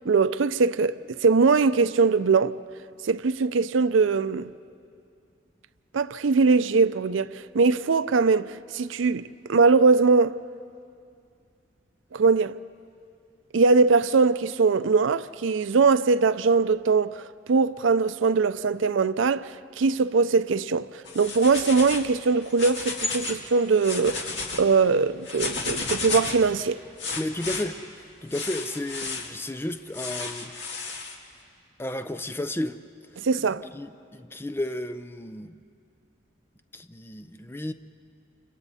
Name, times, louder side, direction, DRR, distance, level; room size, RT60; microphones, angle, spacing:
voice 1, 0.1-2.5 3.0-4.5 5.9-9.2 9.5-10.3 12.1-12.5 13.5-17.2 17.5-20.9 21.1-24.3 24.6-26.8 33.2-33.6, right 4 dB, 85° right, 0.5 m, -21 dB
sound 1, 21.0-22.1 22.4-23.4 23.7-24.6 25.2-26.5 27.0-27.6 28.3-29.3 29.9-31.1, left 4 dB, 65° left, 2.1 m, -32 dB
voice 2, 27.2-30.5 31.8-32.8 33.4-35.6 36.7-37.7, left 1 dB, 10° left, 0.5 m, -33 dB
30.0 x 26.5 x 4.2 m
head